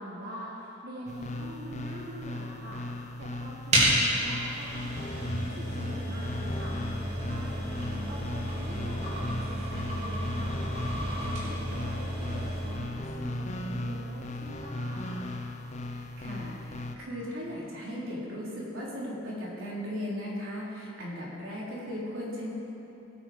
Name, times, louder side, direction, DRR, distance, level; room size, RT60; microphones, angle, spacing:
voice 1, 0.0-2.8 3.2-6.8 7.2-10.6 11.0-15.2, equal, 50° right, -5 dB, 1.5 m, -44 dB
sound 1, 1.1-17.0, left 1 dB, 35° left, 0.7 m, -37 dB
sound 2, 3.7-12.8, equal, 35° right, 3.3 m, -31 dB
voice 2, 15.9-22.5, equal, 80° right, -6 dB, 3.7 m, -37 dB
18.0 x 9.2 x 5.2 m, 3.0 s
head